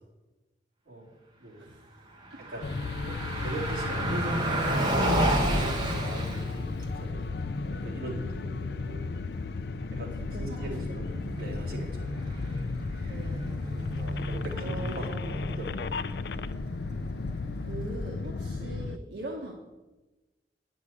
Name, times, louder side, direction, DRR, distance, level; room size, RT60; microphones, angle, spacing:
voice 1, 0.9-1.7 2.4-2.7 3.0-9.2 9.9-12.6 12.9-13.3 13.7-16.3 18.6-18.8, right 2 dB, 55° right, -4 dB, 3.1 m, -41 dB
voice 2, 1.6-1.9 2.3-2.4 5.5-6.1 8.0-9.2 10.2-11.4 13.1-13.6 14.0-14.2 14.5-15.4 17.6-19.5, right 1 dB, 75° right, -1 dB, 1.3 m, -43 dB
Car passing by, 2.1-18.3, right 1 dB, 25° right, 1.5 m, -33 dB
sound 1, 2.6-19.0, left 4 dB, 65° left, 0.4 m, -34 dB
9.6 x 6.0 x 8.3 m, 1.1 s
head